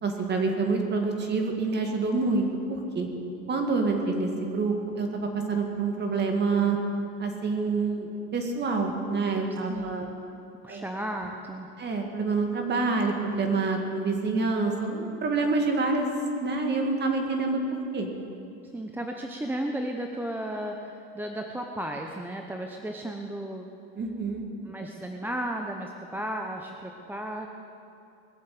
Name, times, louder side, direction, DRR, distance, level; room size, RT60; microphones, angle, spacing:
voice 1, 0.0-3.1 3.5-6.8 7.2-10.1 10.7-10.9 11.8-16.1 16.4-17.6 17.9-18.1 24.0-24.5, right 3 dB, 30° right, 3 dB, 2.2 m, -27 dB
voice 2, 9.7-10.1 10.6-11.7 18.7-23.7 24.7-27.5, right 1 dB, 5° right, 2 dB, 0.7 m, -34 dB
21.0 x 7.7 x 7.8 m, 2.6 s
supercardioid pair, 135°, 35 cm